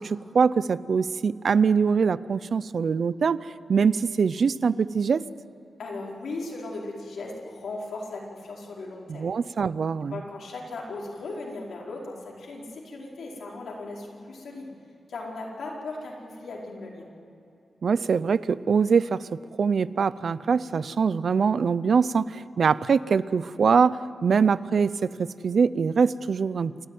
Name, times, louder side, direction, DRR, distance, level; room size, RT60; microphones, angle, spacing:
voice 1, 0.0-5.2 9.1-10.2 17.8-26.9, right 5 dB, 60° right, 17 dB, 0.5 m, -23 dB
voice 2, 5.8-9.3 10.1-14.7 15.1-17.1, left 2 dB, 85° left, -2 dB, 4.6 m, -37 dB
28.0 x 13.0 x 9.3 m, 2.6 s
wide cardioid pair, 135°, 0 cm